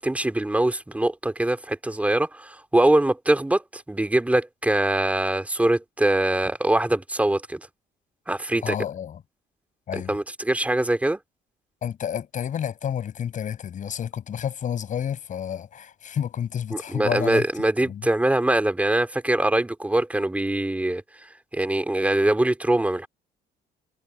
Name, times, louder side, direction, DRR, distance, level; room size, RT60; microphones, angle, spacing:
voice 1, 0.0-7.6 8.3-8.8 9.9-11.2 16.7-21.0 21.5-23.1, right 1 dB, 10° right, 2.9 m, -23 dB
voice 2, 8.6-9.2 9.9-10.2 11.8-17.4 17.9-18.1, left 9 dB, 50° left, 6.5 m, -30 dB
cardioid pair, 110°, 17 cm